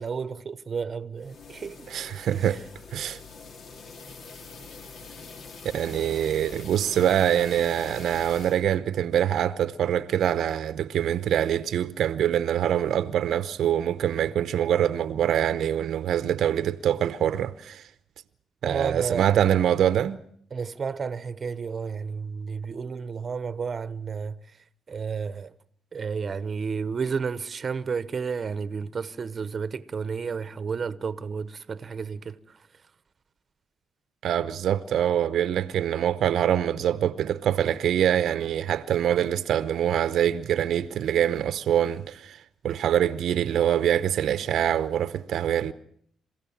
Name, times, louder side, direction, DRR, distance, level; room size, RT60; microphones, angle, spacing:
voice 1, 0.0-1.9 2.3-2.6 18.6-19.3 20.5-25.5 25.9-32.8, right 5 dB, 40° right, 1.0 m, -32 dB
sound 1, 1.2-8.6, left 4 dB, 60° left, 2.2 m, -44 dB
voice 2, 1.9-2.6 2.9-3.2 5.7-17.9 18.6-20.2 34.2-45.7, right 10 dB, 70° right, 0.8 m, -24 dB
28.0 x 16.0 x 7.2 m
cardioid pair, 90°, 0 cm